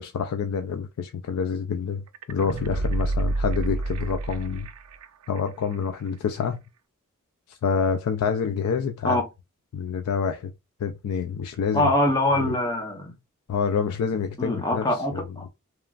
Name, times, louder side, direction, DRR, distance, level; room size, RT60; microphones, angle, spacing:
voice 1, 0.0-4.7 5.3-6.6 7.5-9.2 9.7-10.5 10.8-11.9 12.4-12.5 13.5-15.2, left 6 dB, 80° left, 0.3 m, -27 dB
sound 1, 2.1-5.0 5.4-5.5, right 2 dB, 85° right, 0.4 m, -28 dB
voice 2, 11.7-13.1 14.4-15.4, left 1 dB, 20° left, 0.7 m, -24 dB
2.9 x 2.4 x 2.3 m
head